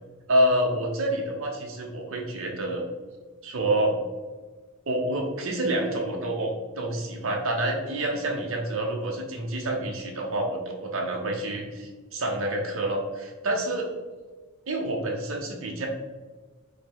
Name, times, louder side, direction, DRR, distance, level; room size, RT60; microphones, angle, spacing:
voice 1, 0.3-2.8 3.4-3.9 4.9-13.9 14.7-15.9, right 1 dB, 70° right, 0 dB, 0.7 m, -28 dB
5.0 x 2.1 x 4.5 m, 1.3 s
head